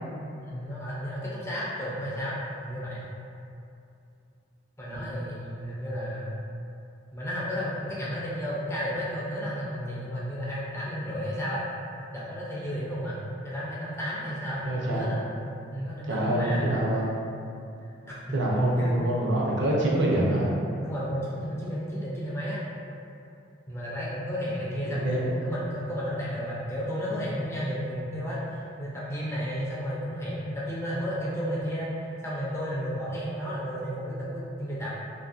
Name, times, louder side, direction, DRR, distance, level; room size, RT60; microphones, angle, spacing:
voice 1, 0.4-2.4 2.6-3.0 4.8-6.4 7.1-11.7 12.1-15.2 15.7-16.7 18.1-18.4 18.8-18.9 20.8-22.6 23.7-34.9, equal, 15° left, -7 dB, 0.3 m, -32 dB
voice 2, 14.6-15.1 16.1-17.2 18.3-20.5 24.8-25.4, right 1 dB, 60° right, -4 dB, 0.5 m, -26 dB
2.9 x 2.5 x 2.3 m, 2.6 s
head